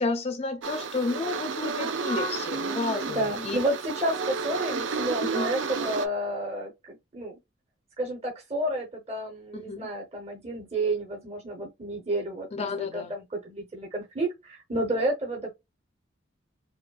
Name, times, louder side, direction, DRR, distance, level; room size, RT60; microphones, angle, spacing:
voice 1, 0.0-3.6 5.3-5.5 9.5-9.9 12.5-13.1, left 3 dB, 30° left, 0.4 m, -31 dB
sound 1, 0.6-6.1, right 4 dB, 70° right, 0.4 m, -31 dB
voice 2, 3.0-7.3 8.0-15.5, right 1 dB, 30° right, 0.8 m, -31 dB
5.0 x 2.2 x 2.3 m
head